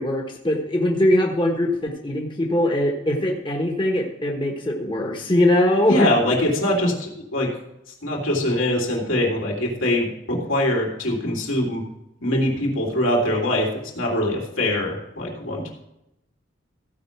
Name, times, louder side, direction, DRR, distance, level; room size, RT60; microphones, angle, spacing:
voice 1, 0.0-6.1, left 1 dB, 25° left, 0 dB, 1.2 m, -21 dB
voice 2, 5.9-7.5 8.0-11.8 12.2-13.7 13.9-15.7, left 1 dB, 85° left, -2 dB, 3.0 m, -23 dB
15.5 x 5.2 x 5.9 m, 0.87 s
head